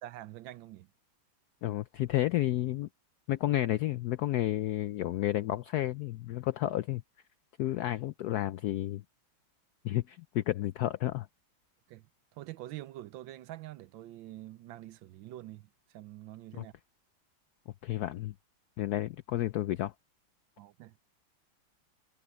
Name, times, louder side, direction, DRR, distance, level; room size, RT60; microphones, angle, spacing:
voice 1, 0.0-0.9 11.9-16.7 20.6-21.0, right 15 dB, 75° right, 1.3 m, -46 dB
voice 2, 1.6-2.9 3.3-7.0 7.6-9.0 9.8-11.3 16.6-16.7 17.8-18.3 18.8-19.9, left 14 dB, 80° left, 0.8 m, -31 dB
omnidirectional pair, 2.2 m